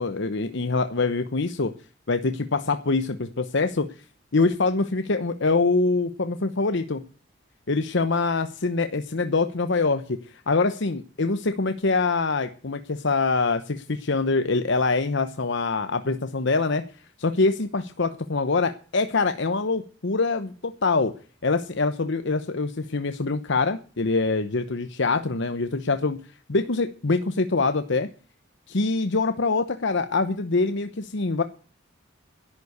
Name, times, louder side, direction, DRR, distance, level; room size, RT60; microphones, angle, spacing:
voice 1, 0.0-1.7 2.1-3.9 4.3-7.0 7.7-10.2 10.5-16.8 17.2-21.1 21.4-26.2 26.5-28.1 28.7-31.4, left 3 dB, 65° left, 9 dB, 1.0 m, -24 dB
11.5 x 9.7 x 8.1 m, 0.40 s
head